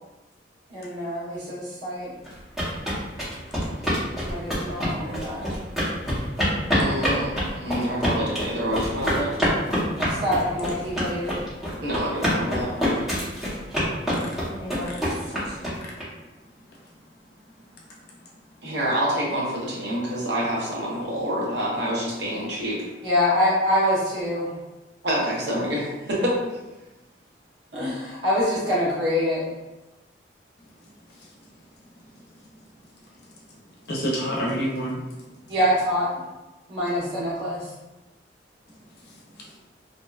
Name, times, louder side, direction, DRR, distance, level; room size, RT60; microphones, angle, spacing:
voice 1, 0.7-2.1 4.2-5.4 10.0-11.4 14.4-15.1 15.5-15.6 23.0-24.5 27.7-29.4 35.5-36.2 36.7-37.6, left 1 dB, 90° right, -7 dB, 1.0 m, -25 dB
sound 1, 2.3-16.0, equal, ahead, 0.7 m, -26 dB
voice 2, 6.7-9.3 11.8-13.1 18.6-22.9 25.0-26.4, equal, 70° right, -4 dB, 0.7 m, -27 dB
voice 3, 33.9-35.0 39.0-39.6, equal, 60° left, -3 dB, 0.6 m, -29 dB
2.7 x 2.1 x 2.3 m, 1.1 s
head